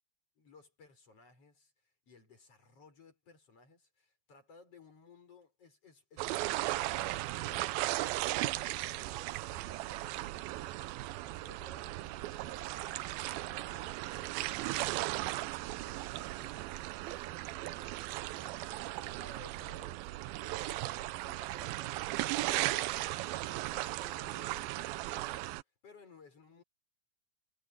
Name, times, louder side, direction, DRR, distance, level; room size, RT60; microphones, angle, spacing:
voice 1, 0.4-8.3 8.8-15.3 15.7-26.6, left 4 dB, 35° left, 7.3 m, -60 dB
sound 1, 6.2-25.6, right 17 dB, 80° right, 2.3 m, -37 dB
omnidirectional pair, 4.6 m